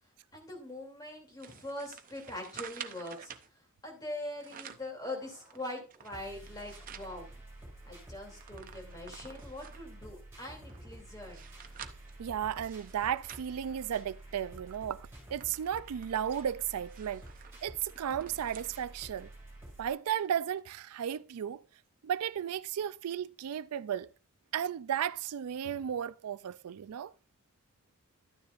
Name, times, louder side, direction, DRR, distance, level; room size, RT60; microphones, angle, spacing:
voice 1, 0.3-7.4 7.8-11.5, left 1 dB, 15° left, 2.7 m, -43 dB
sound 1, 1.4-3.5 4.2-4.9 5.4-7.1 7.6-7.7 7.9-9.9 10.5-14.3 14.7-14.8 15.1-18.8 19.2-19.3 20.1-20.2, right 8 dB, 40° right, 0.6 m, -50 dB
sound 2, 5.0-19.9, right 1 dB, 10° right, 5.3 m, -50 dB
voice 2, 12.2-17.2 17.6-19.3 19.8-21.6 22.0-24.1 24.5-27.1, right 9 dB, 90° right, 0.4 m, -34 dB
12.0 x 9.5 x 2.5 m
head